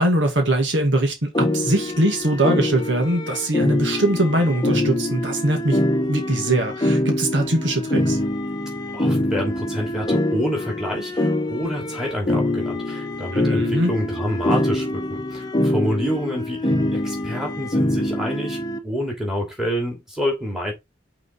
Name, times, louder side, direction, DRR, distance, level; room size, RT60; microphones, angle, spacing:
voice 1, 0.0-5.8 6.1-8.2 13.3-13.9, right 1 dB, 70° right, 2.0 m, -21 dB
sound 1, 1.3-18.8, left 1 dB, 20° left, 0.9 m, -24 dB
voice 2, 8.9-20.7, equal, 5° right, 2.9 m, -28 dB
6.2 x 3.9 x 4.4 m
head